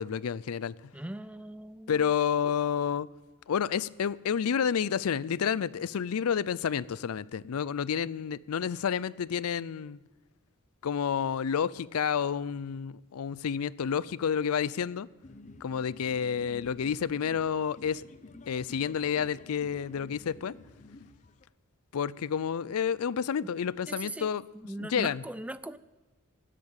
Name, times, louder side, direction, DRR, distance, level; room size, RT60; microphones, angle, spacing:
voice 1, 0.0-0.8 1.9-3.1 3.5-10.0 10.8-15.1 15.6-18.0 18.5-20.5 21.9-24.4 24.8-25.2, left 7 dB, 80° left, 0.4 m, -30 dB
voice 2, 0.9-2.0 23.9-24.3 24.6-25.8, right 1 dB, 5° right, 0.4 m, -39 dB
sound 1, 15.2-21.4, left 2 dB, 35° left, 0.7 m, -51 dB
16.0 x 8.4 x 8.8 m
head